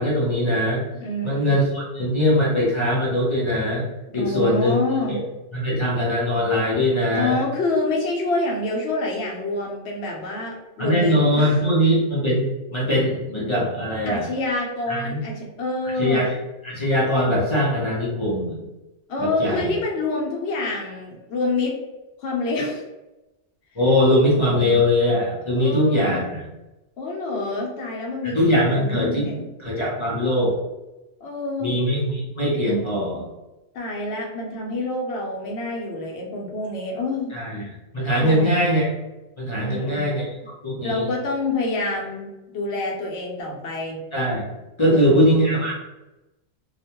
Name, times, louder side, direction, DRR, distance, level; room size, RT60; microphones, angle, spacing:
voice 1, 0.0-0.8 1.2-3.8 4.1-4.8 5.1-5.2 5.5-7.4 10.8-14.3 14.9-15.2 16.0-16.4 16.6-18.6 19.2-19.7 23.8-26.4 28.3-29.3 29.6-30.6 31.6-33.2 37.3-37.7 37.9-38.9 39.4-40.3 40.6-41.1 44.1-44.5 44.8-45.7, equal, 35° left, -5 dB, 0.6 m, -21 dB
voice 2, 1.0-1.6 4.1-5.2 7.1-12.0 14.1-16.2 19.1-21.7 22.2-22.8 24.3-24.8 25.5-26.2 27.0-29.5 31.2-31.7 33.7-37.4 38.2-38.5 39.6-40.1 40.8-44.0 44.8-45.3, left 2 dB, 70° left, -1 dB, 0.9 m, -27 dB
2.5 x 2.2 x 2.8 m, 1.0 s
omnidirectional pair, 1.2 m